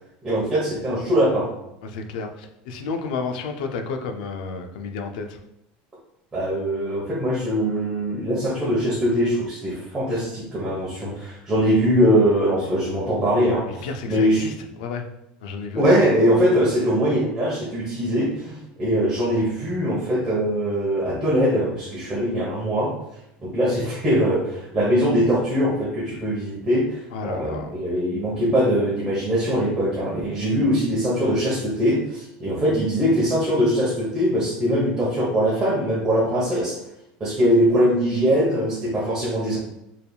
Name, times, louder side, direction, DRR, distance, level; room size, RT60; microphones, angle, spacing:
voice 1, 0.2-1.5 6.3-14.4 15.7-22.9 23.4-36.8 37.2-39.6, equal, 15° right, -8 dB, 1.1 m, -22 dB
voice 2, 1.8-5.4 13.7-15.1 15.4-15.8 27.1-27.7, left 4 dB, 90° left, 5 dB, 0.5 m, -31 dB
4.5 x 3.4 x 2.3 m, 0.83 s
cardioid pair, 150°, 4 cm